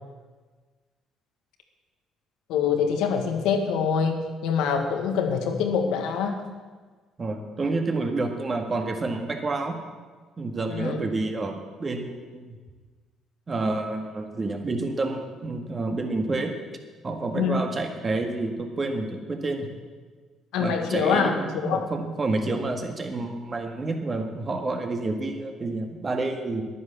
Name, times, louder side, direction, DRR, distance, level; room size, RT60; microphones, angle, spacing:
voice 1, 2.5-6.4 10.7-11.0 17.3-17.6 20.5-21.3 21.6-21.9, left 6 dB, 80° left, 5 dB, 1.6 m, -25 dB
voice 2, 7.2-9.8 10.4-12.6 13.5-16.6 17.0-19.7 20.6-26.6, right 2 dB, 35° right, 4 dB, 1.9 m, -29 dB
11.0 x 9.4 x 7.0 m, 1.4 s
supercardioid pair, 70°, 0 cm